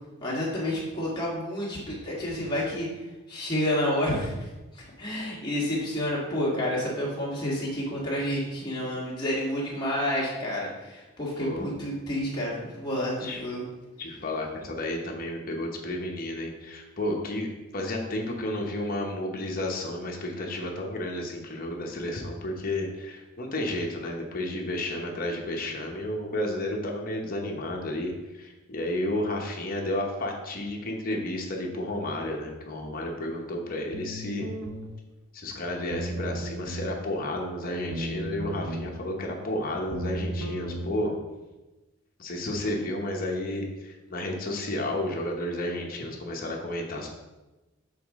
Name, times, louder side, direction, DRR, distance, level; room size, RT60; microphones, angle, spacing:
voice 1, 0.2-2.9 3.3-4.5 4.7-13.6, left 1 dB, 20° left, -6 dB, 1.5 m, -29 dB
voice 2, 11.4-11.7 13.2-13.4 14.0-34.5 35.3-41.1 42.2-47.1, left 1 dB, 40° left, 0 dB, 0.9 m, -32 dB
sound 1, 33.9-34.9 35.9-36.9 37.9-38.9 39.9-40.9, right 1 dB, 65° right, 0.6 m, -34 dB
6.9 x 4.0 x 3.6 m, 1.1 s
head